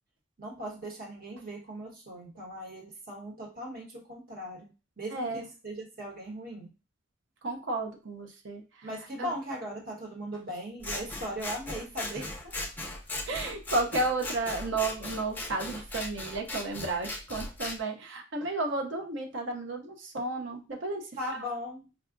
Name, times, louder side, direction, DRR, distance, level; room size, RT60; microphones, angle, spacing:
voice 1, 0.4-4.7 5.0-6.7 8.8-12.5 21.2-21.8, equal, 45° right, -2 dB, 1.2 m, -39 dB
voice 2, 5.1-5.4 7.4-8.6 9.2-9.3 12.1-12.2 13.3-21.1 21.3-21.5, right 2 dB, 60° right, 3 dB, 0.6 m, -32 dB
Scissors, 10.8-17.8, left 2 dB, 10° left, 0.4 m, -38 dB
4.7 x 2.3 x 2.5 m, 0.31 s
head